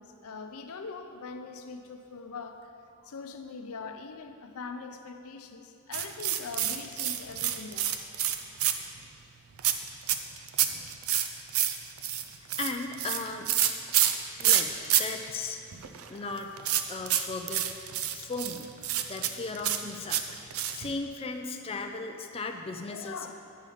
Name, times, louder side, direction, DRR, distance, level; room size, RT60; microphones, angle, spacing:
voice 1, 0.0-2.7 3.0-8.1 22.9-23.3, left 4 dB, 90° left, 6 dB, 0.6 m, -42 dB
sound 1, 5.9-9.0 9.6-15.0 15.3-15.4 15.7-20.9, right 11 dB, 75° right, 0.5 m, -28 dB
voice 2, 12.6-13.5 14.4-14.7 15.0-15.6 16.1-16.5 16.9-17.7 18.1-18.7 19.1-20.2 20.7-23.3, left 3 dB, 25° left, 4 dB, 0.4 m, -36 dB
8.8 x 5.6 x 4.9 m, 2.5 s
head